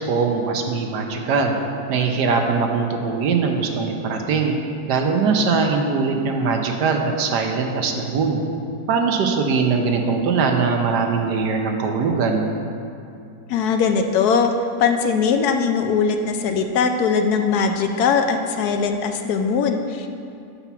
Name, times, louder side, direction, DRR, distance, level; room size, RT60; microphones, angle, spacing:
voice 1, 0.1-1.5 1.9-4.5 4.9-8.4 8.9-12.5, right 5 dB, 75° right, 3 dB, 1.3 m, -21 dB
voice 2, 13.5-14.5 14.8-20.1, left 5 dB, 75° left, 6 dB, 1.1 m, -20 dB
6.9 x 5.7 x 5.9 m, 2.5 s
omnidirectional pair, 1.8 m